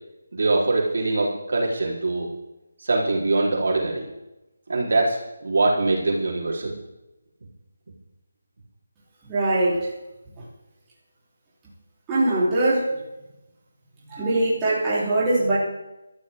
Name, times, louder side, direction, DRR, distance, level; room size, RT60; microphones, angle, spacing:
voice 1, 0.3-2.3 2.8-4.0 4.7-6.7, right 2 dB, 60° right, -3 dB, 4.0 m, -23 dB
voice 2, 9.2-9.8 10.4-10.5 12.1-12.8 14.1-15.6, right 2 dB, 15° right, -9 dB, 3.7 m, -22 dB
19.5 x 13.0 x 3.7 m, 0.96 s
figure-of-eight pair, 170°, 0 cm